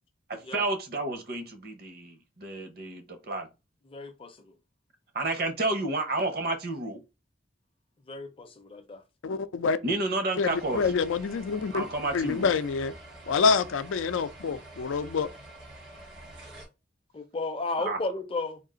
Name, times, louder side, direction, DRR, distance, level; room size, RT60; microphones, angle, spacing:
voice 1, 0.5-3.5 5.1-7.0 9.8-10.8 11.7-12.5 17.8-18.0, right 2 dB, 50° right, 0.8 m, -30 dB
voice 2, 3.8-4.6 8.1-9.0 17.1-18.6, left 3 dB, 30° left, 0.5 m, -34 dB
voice 3, 9.2-9.8 10.4-11.8 12.1-12.9 13.3-15.3, left 5 dB, 85° left, 0.4 m, -27 dB
sound 1, 10.5-16.7, right 1 dB, 75° right, 1.9 m, -47 dB
3.7 x 2.4 x 3.7 m
head